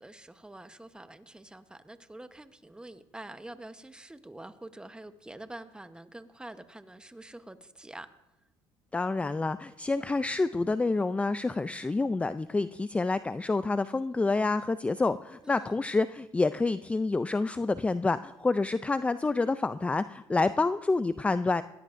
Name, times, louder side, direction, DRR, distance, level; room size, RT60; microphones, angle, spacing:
voice 1, 0.0-8.1 15.4-15.8, right 1 dB, 10° right, 10 dB, 1.0 m, -46 dB
voice 2, 8.9-21.6, left 3 dB, 15° left, 13 dB, 0.4 m, -28 dB
22.0 x 16.5 x 2.6 m, 1.0 s
supercardioid pair, 90°, 9 cm